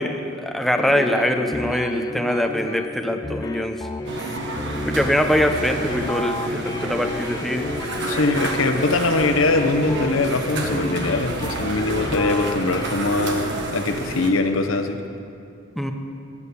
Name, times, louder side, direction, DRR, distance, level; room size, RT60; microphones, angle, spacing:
voice 1, 0.0-3.9 4.9-7.6 15.8-15.9, equal, ahead, 4 dB, 0.7 m, -23 dB
sound 1, 0.8-12.9, left 1 dB, 20° left, 0.3 m, -32 dB
sound 2, 4.0-14.3, right 2 dB, 60° right, 1.2 m, -30 dB
voice 2, 8.1-15.0, left 2 dB, 75° left, 6 dB, 0.8 m, -22 dB
11.5 x 8.3 x 6.8 m, 2.6 s
head